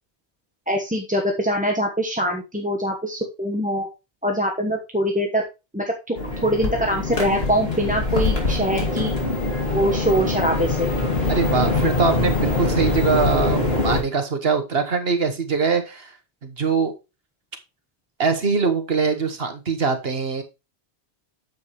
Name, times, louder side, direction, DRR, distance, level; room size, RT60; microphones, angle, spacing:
voice 1, 0.7-3.9 4.2-5.4 5.7-6.2 6.4-9.1 9.7-10.9, equal, 10° right, 1 dB, 1.0 m, -23 dB
sound 1, 6.2-14.0, left 2 dB, 60° left, 2.6 m, -23 dB
voice 2, 11.3-16.1 16.4-16.9 18.2-20.4, right 5 dB, 60° right, 6 dB, 1.3 m, -22 dB
9.3 x 7.3 x 3.1 m, 0.27 s
omnidirectional pair, 1.2 m